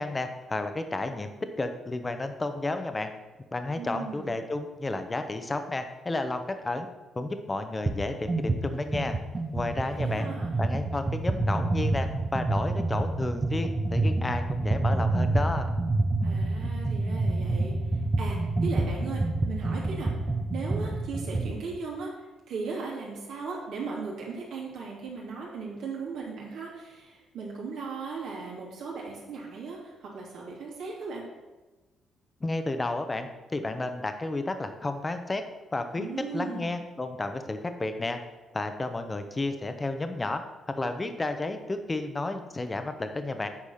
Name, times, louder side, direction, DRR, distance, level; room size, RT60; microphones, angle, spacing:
voice 1, 0.0-3.1 3.5-6.9 7.1-9.2 9.5-10.3 10.6-15.7 32.4-35.4 35.7-38.2 38.5-40.4 40.7-43.5, left 2 dB, 20° left, 8 dB, 0.9 m, -32 dB
voice 2, 3.8-4.3 9.8-10.5 16.2-17.8 18.2-20.1 20.5-22.1 22.5-31.2 36.0-36.8, right 4 dB, 80° right, -3 dB, 2.9 m, -37 dB
sound 1, 7.9-8.0 8.3-21.6, right 2 dB, 25° right, 0.8 m, -28 dB
8.5 x 4.9 x 5.8 m, 1.2 s
cardioid pair, 90°, 0 cm